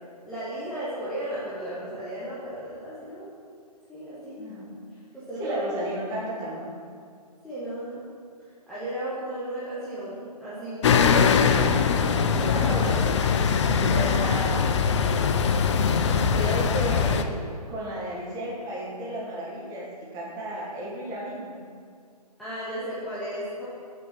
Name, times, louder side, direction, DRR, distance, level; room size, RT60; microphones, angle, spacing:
voice 1, 0.2-3.3 3.9-4.5 5.1-5.6 7.4-8.1 8.7-11.6 13.8-14.3 22.4-23.6, right 1 dB, ahead, -12 dB, 1.0 m, -34 dB
voice 2, 4.3-4.8 5.4-6.8 12.2-13.1 14.2-14.7 16.3-17.3 17.7-19.8 20.1-21.6, equal, 15° right, -6 dB, 1.6 m, -33 dB
sound 1, 10.8-17.2, left 6 dB, 45° left, 0.4 m, -22 dB
6.3 x 4.3 x 5.7 m, 2.2 s
figure-of-eight pair, 135°, 21 cm